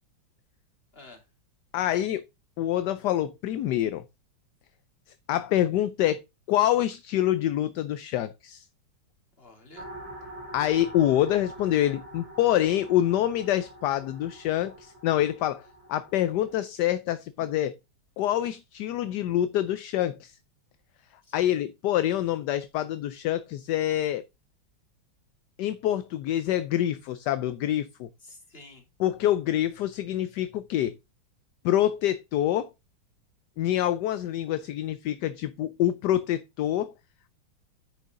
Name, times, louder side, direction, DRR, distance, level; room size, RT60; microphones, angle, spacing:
voice 1, 0.9-1.3 9.4-9.9 21.2-21.5 28.2-28.8, left 2 dB, 30° left, 3.1 m, -50 dB
voice 2, 1.7-2.2 2.6-4.0 5.3-6.2 6.5-8.7 10.5-17.8 18.2-20.4 21.3-24.2 25.6-28.1 29.0-30.9 31.6-32.7 33.6-36.9, left 12 dB, 70° left, 1.1 m, -26 dB
sound 1, 9.8-16.5, right 1 dB, 90° right, 5.5 m, -45 dB
9.8 x 6.4 x 3.7 m
omnidirectional pair, 2.1 m